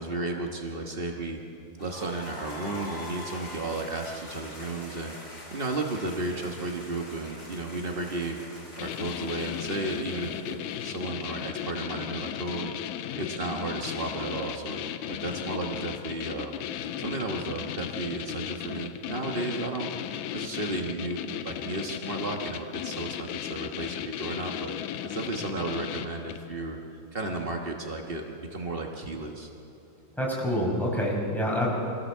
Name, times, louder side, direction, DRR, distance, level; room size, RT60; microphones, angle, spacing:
voice 1, 0.0-1.4 1.8-5.1 5.5-8.4 8.8-12.7 13.1-14.8 15.1-16.6 17.0-19.9 20.3-24.7 25.0-26.8 27.1-29.5, right 2 dB, 90° right, 1 dB, 0.5 m, -33 dB
sound 1, 1.8-11.6, left 1 dB, 25° left, 4.0 m, -44 dB
sound 2, 8.8-26.5, left 11 dB, 85° left, 2.1 m, -36 dB
voice 2, 30.2-31.8, equal, ahead, -3 dB, 5.0 m, -27 dB
25.0 x 16.0 x 7.4 m, 2.7 s
omnidirectional pair, 3.4 m